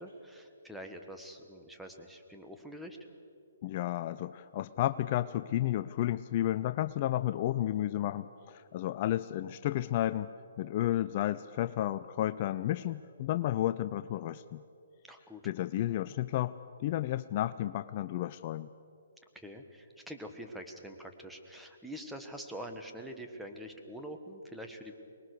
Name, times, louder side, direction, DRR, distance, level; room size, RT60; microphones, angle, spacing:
voice 1, 0.0-3.0 15.0-15.7 19.3-24.9, equal, ahead, 3 dB, 1.6 m, -45 dB
voice 2, 3.6-10.3 10.6-14.6 15.4-18.7, left 13 dB, 40° left, 14 dB, 0.5 m, -32 dB
24.0 x 20.5 x 6.7 m, 2.7 s
hypercardioid pair, 140°, 0 cm